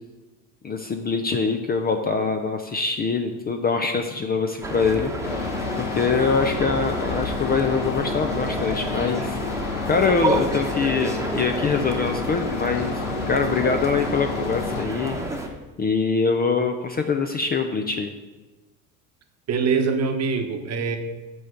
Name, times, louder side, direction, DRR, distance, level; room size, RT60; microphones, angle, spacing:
voice 1, 0.6-5.5 5.8-9.4 9.9-15.2 15.8-18.1, left 4 dB, 20° left, 6 dB, 0.5 m, -24 dB
sound 1, 4.6-15.5, right 2 dB, 5° right, 1.0 m, -30 dB
sound 2, 5.2-14.9, left 6 dB, 85° left, 0.8 m, -31 dB
voice 2, 19.5-21.0, right 5 dB, 35° right, 6 dB, 1.0 m, -23 dB
6.3 x 4.4 x 6.6 m, 1.1 s
hypercardioid pair, 85°, 43 cm